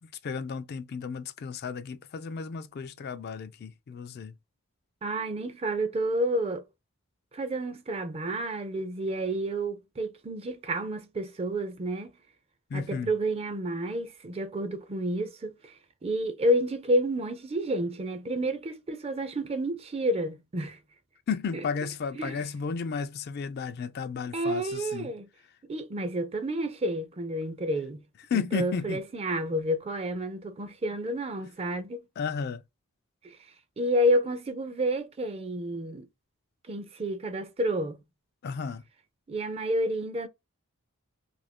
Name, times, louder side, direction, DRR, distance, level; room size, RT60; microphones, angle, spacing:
voice 1, 0.0-4.3 12.7-13.1 21.3-25.1 28.3-29.0 32.2-32.6 38.4-38.8, left 5 dB, 45° left, 0.3 m, -33 dB
voice 2, 5.0-6.6 7.3-12.1 12.7-20.8 22.2-22.3 24.3-25.3 25.7-28.0 28.3-32.0 33.2-33.4 33.8-36.1 36.7-38.0 39.3-40.3, right 1 dB, 25° right, 0.4 m, -30 dB
2.7 x 2.5 x 3.4 m
head